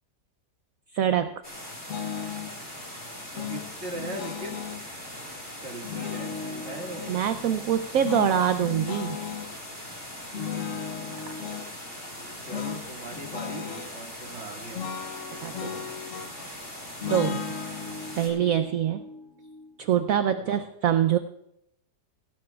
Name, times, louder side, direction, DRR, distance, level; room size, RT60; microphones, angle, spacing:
voice 1, 0.9-1.3 7.1-9.2 15.4-15.9 17.1-17.5 18.2-19.0 19.8-21.2, right 9 dB, 70° right, 10 dB, 0.8 m, -24 dB
sound 1, 1.4-18.3, left 1 dB, 25° left, 3.8 m, -41 dB
sound 2, 1.9-2.5 3.3-4.8 5.8-7.2 8.0-9.5 10.3-11.7 12.5-12.8 13.1-13.9 14.7-16.5 17.0-20.1, left 7 dB, 55° left, 1.0 m, -36 dB
voice 2, 2.6-3.0 3.3-4.6 5.6-7.3 10.3-10.6 12.2-14.9 20.4-20.6, right 1 dB, 40° right, 0 dB, 2.2 m, -40 dB
18.5 x 16.0 x 2.4 m, 0.79 s
omnidirectional pair, 1.9 m